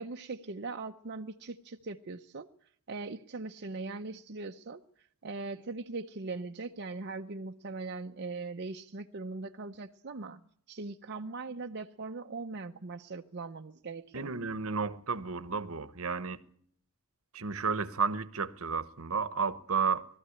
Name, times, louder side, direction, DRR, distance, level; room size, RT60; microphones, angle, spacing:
voice 1, 0.0-14.3, right 3 dB, 50° right, 0.7 m, -40 dB
voice 2, 14.1-16.4 17.3-20.1, right 5 dB, 70° right, 1.1 m, -32 dB
20.0 x 14.0 x 9.7 m
head